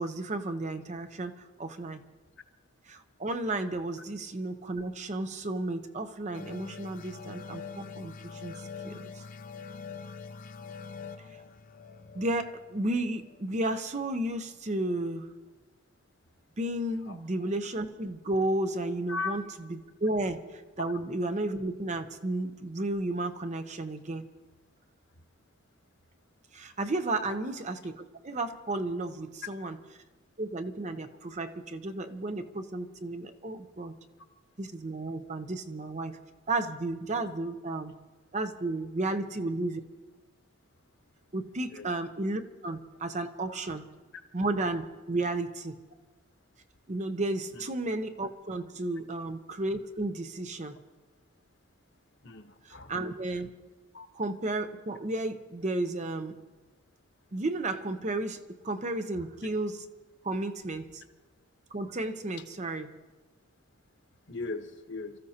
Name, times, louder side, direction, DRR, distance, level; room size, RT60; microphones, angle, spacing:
voice 1, 0.0-2.0 2.9-9.2 12.1-15.3 16.6-24.2 26.5-29.8 30.4-33.9 34.6-36.2 36.5-37.9 38.3-39.8 41.3-43.9 44.3-45.8 46.9-50.8 52.6-53.5 54.2-56.4 57.3-59.9 60.2-61.0 61.7-62.9, right 2 dB, 35° right, 8 dB, 0.7 m, -33 dB
sound 1, 6.3-13.6, left 5 dB, 40° left, 0.6 m, -44 dB
voice 2, 52.2-52.9 53.9-54.1 64.3-65.2, left 3 dB, 55° left, 7 dB, 1.1 m, -37 dB
29.5 x 14.0 x 2.9 m, 1.3 s
head